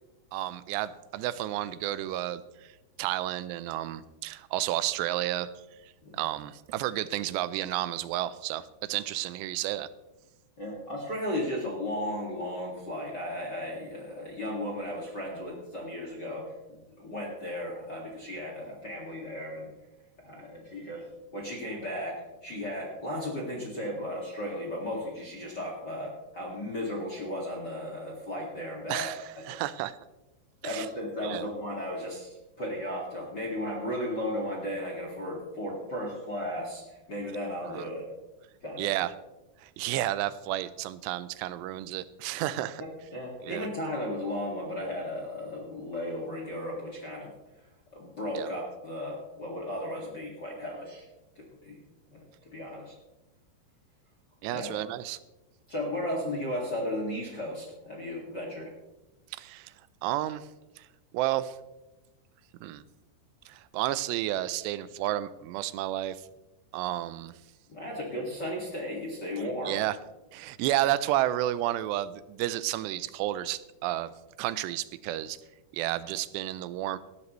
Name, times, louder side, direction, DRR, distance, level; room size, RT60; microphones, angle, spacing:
voice 1, 0.3-2.7 3.0-5.5 6.1-9.9 28.9-29.2 29.5-30.0 30.6-30.9 31.2-31.5 37.7-37.9 38.8-39.1 39.6-42.8 43.4-43.7 48.4-48.5 54.4-55.2 59.3-59.7 60.0-60.5 60.8-60.9 61.1-61.6 62.6-62.8 63.5-66.2 66.7-67.3 69.7-70.0 70.3-74.1 74.4-75.4 75.7-77.0, right 14 dB, 80° right, 15 dB, 2.6 m, -31 dB
voice 2, 10.6-19.7 20.2-21.0 21.3-29.1 29.5-29.6 30.6-38.0 38.6-39.1 43.1-47.3 47.9-51.1 51.4-51.8 52.1-52.9 54.5-54.7 55.7-58.7 67.7-69.8, left 1 dB, 40° left, -2 dB, 1.7 m, -35 dB
18.5 x 12.5 x 3.1 m, 1.0 s
omnidirectional pair, 5.1 m